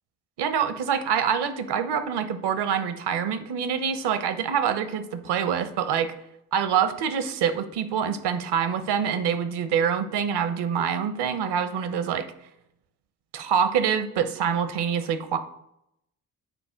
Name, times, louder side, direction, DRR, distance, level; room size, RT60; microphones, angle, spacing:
voice 1, 0.4-6.1 6.5-12.3 13.3-15.4, right 7 dB, 60° right, 11 dB, 0.9 m, -25 dB
8.1 x 4.2 x 5.0 m, 0.79 s
hypercardioid pair, 50°, 45 cm